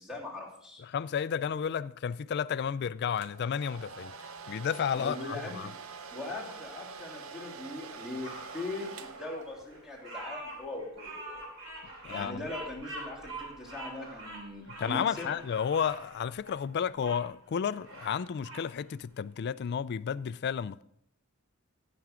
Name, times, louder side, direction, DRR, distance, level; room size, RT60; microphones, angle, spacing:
voice 1, 0.0-0.8 4.9-5.7 6.1-11.1 12.1-15.3, left 2 dB, 5° right, 2.8 m, -40 dB
voice 2, 0.8-4.1 4.5-5.7 12.0-12.4 14.8-20.8, left 7 dB, 50° left, 0.3 m, -32 dB
Domestic sounds home sounds, 3.2-9.9, right 5 dB, 80° right, 0.7 m, -46 dB
sound 1, 6.0-14.0, left 3 dB, 40° right, 2.6 m, -57 dB
Bird vocalization bird call bird song, 8.2-17.2 17.7-18.7, right 2 dB, 65° right, 4.4 m, -45 dB
15.0 x 6.0 x 5.0 m
head